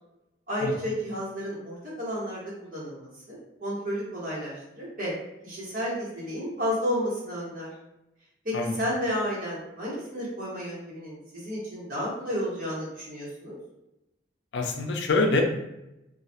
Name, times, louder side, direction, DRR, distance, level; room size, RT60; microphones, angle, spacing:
voice 1, 0.5-5.1 5.4-7.7 8.4-13.5, equal, 50° right, -7 dB, 1.0 m, -32 dB
voice 2, 14.5-15.4, left 3 dB, 85° left, 3 dB, 0.4 m, -25 dB
2.3 x 2.1 x 2.7 m, 0.90 s
head